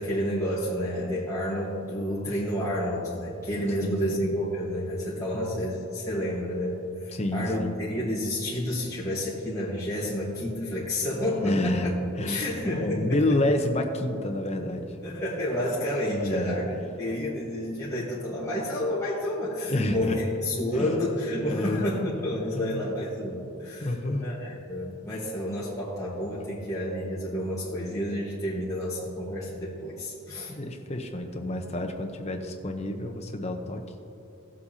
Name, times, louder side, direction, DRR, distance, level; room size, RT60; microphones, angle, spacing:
voice 1, 0.0-11.9 12.3-13.2 15.0-16.7 17.0-23.9 24.2-30.5, left 1 dB, 15° left, -8 dB, 1.4 m, -30 dB
voice 2, 3.8-4.2 5.3-5.7 7.1-7.8 11.4-11.9 12.2-12.5 12.8-15.0 16.1-16.6 19.7-20.2 20.7-20.9 21.4-21.8 22.5-22.8 23.8-24.2 30.5-33.8, left 1 dB, 30° left, 4 dB, 0.8 m, -29 dB
16.0 x 7.6 x 2.8 m, 2.8 s
head